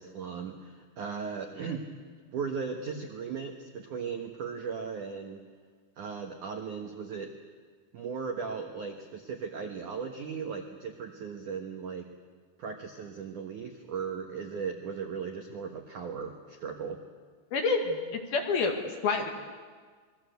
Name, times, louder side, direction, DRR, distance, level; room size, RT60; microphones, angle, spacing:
voice 1, 0.0-1.9 2.3-5.4 6.0-7.3 7.9-12.1 12.6-17.0, right 6 dB, 65° right, 3 dB, 2.0 m, -37 dB
voice 2, 17.5-18.8 19.0-19.3, left 4 dB, 55° left, 3 dB, 3.4 m, -28 dB
27.5 x 22.0 x 8.1 m, 1.6 s
omnidirectional pair, 5.7 m